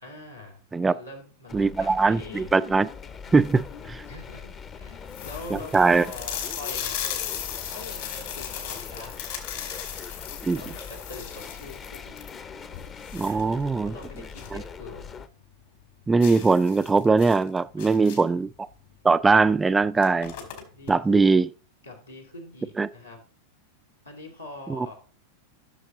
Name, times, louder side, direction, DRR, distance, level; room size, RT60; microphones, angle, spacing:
voice 1, 0.0-2.6 3.3-7.0 7.7-9.3 10.5-12.2 13.2-15.2 17.8-18.3 20.7-21.4 21.8-23.2 24.0-24.9, left 2 dB, 85° left, 2.8 m, -43 dB
sound 1, 1.5-15.3, left 6 dB, 25° left, 0.7 m, -42 dB
voice 2, 1.5-2.9 3.3-4.0 5.5-6.0 10.4-10.6 13.1-13.9 14.5-14.6 16.1-18.5 19.0-20.3 20.9-21.5 22.8-22.9 24.7-24.9, right 4 dB, 10° right, 0.3 m, -21 dB
sound 2, 3.2-3.7 4.3-4.4 4.7-4.8 5.1-14.6 15.0-15.1 15.4-15.5 16.2-18.4 19.4-19.5 19.8-20.9, left 8 dB, 60° left, 2.1 m, -37 dB
12.0 x 6.5 x 3.8 m
figure-of-eight pair, 90°, 0 cm